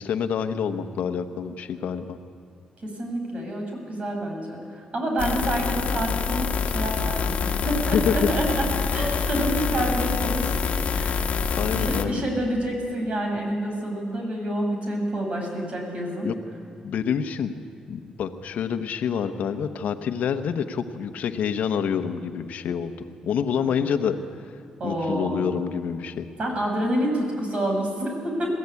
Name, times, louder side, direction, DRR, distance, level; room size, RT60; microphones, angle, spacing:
voice 1, 0.0-2.2 7.9-8.3 11.6-12.3 16.2-16.3 16.8-17.5 17.9-24.2 24.8-26.3, left 7 dB, 75° left, 7 dB, 1.1 m, -27 dB
voice 2, 2.8-8.6 8.9-10.6 10.9-16.3 23.6-23.7 24.8-25.4 26.4-28.6, right 1 dB, 50° right, 1 dB, 6.8 m, -28 dB
sound 1, 5.2-12.0, left 6 dB, 60° left, 1.4 m, -26 dB
21.5 x 15.5 x 8.5 m, 2.4 s
supercardioid pair, 60°, 3 cm